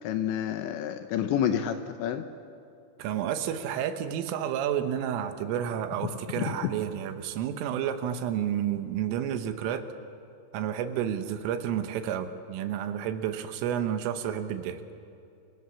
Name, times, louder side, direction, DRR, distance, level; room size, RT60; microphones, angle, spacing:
voice 1, 0.0-2.3 6.3-6.7, left 9 dB, 75° left, 8 dB, 2.9 m, -29 dB
voice 2, 3.0-9.8 10.5-14.8, right 9 dB, 85° right, 9 dB, 3.8 m, -30 dB
29.0 x 25.0 x 7.1 m, 2.5 s
omnidirectional pair, 5.8 m